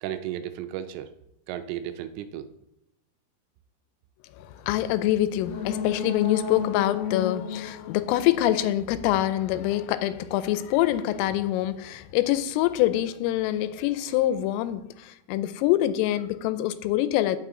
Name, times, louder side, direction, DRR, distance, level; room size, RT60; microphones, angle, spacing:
voice 1, 0.0-1.1 1.5-2.5, right 11 dB, 85° right, 10 dB, 3.0 m, -34 dB
voice 2, 4.4-17.4, left 13 dB, 90° left, 13 dB, 3.3 m, -25 dB
sound 1, 5.4-9.1 9.4-9.5, left 7 dB, 65° left, 3.0 m, -33 dB
15.5 x 6.5 x 3.8 m, 0.83 s
omnidirectional pair, 5.8 m